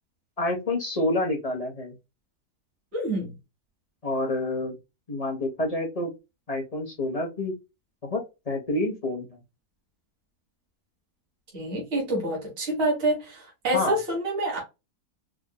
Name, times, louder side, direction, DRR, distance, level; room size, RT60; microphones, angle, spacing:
voice 1, 0.4-1.9 4.0-4.7 5.1-6.1 6.5-7.5 8.0-9.4 13.7-14.0, left 2 dB, 30° left, 0.8 m, -28 dB
voice 2, 2.9-3.3 11.5-14.6, right 1 dB, 40° right, 1.8 m, -27 dB
4.8 x 2.6 x 2.2 m
omnidirectional pair, 1.7 m